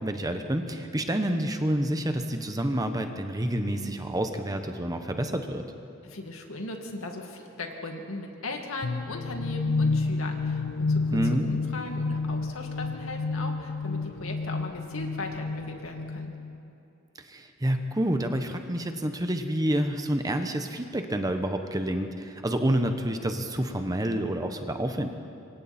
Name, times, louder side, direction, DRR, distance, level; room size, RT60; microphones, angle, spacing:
voice 1, 0.0-5.6 11.1-11.4 17.3-25.1, right 1 dB, 15° right, 6 dB, 1.0 m, -28 dB
voice 2, 6.0-11.2 11.4-16.3, left 2 dB, 70° left, 2 dB, 2.4 m, -38 dB
sound 1, 8.8-16.6, left 3 dB, 50° left, 0.4 m, -30 dB
26.5 x 24.5 x 4.4 m, 2.7 s
head